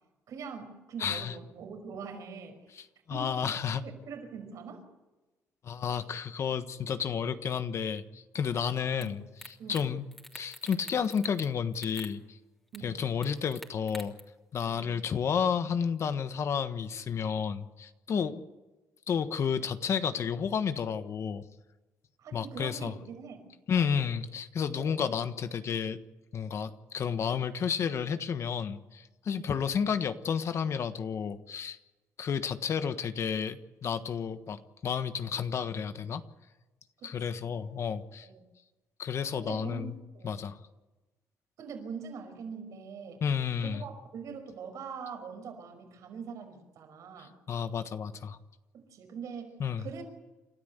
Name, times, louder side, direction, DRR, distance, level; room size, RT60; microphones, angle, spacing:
voice 1, 0.3-2.6 3.1-3.4 3.8-4.9 8.8-9.2 9.6-9.9 12.7-13.0 14.7-14.9 18.1-18.4 22.2-24.1 24.8-25.0 29.4-29.6 37.0-37.4 38.2-38.4 39.3-40.4 41.6-43.2 43.6-47.3 48.7-50.0, right 6 dB, 70° right, 6 dB, 5.4 m, -43 dB
voice 2, 1.0-1.3 3.1-3.8 5.6-9.2 9.7-10.0 10.3-12.4 12.8-14.1 14.5-18.3 19.1-21.4 22.3-22.9 23.7-26.0 26.3-31.8 32.2-36.2 37.0-38.3 39.0-39.9 40.2-40.6 43.2-43.8 47.5-48.4 49.6-49.8, left 7 dB, 55° left, 10 dB, 1.4 m, -31 dB
sound 1, 9.0-9.1 9.4-9.8 10.1-11.5 11.7-12.1 12.7-12.8 13.2-14.2, equal, 5° left, 3.1 m, -46 dB
29.0 x 13.0 x 8.1 m, 1.1 s
cardioid pair, 105°, 6 cm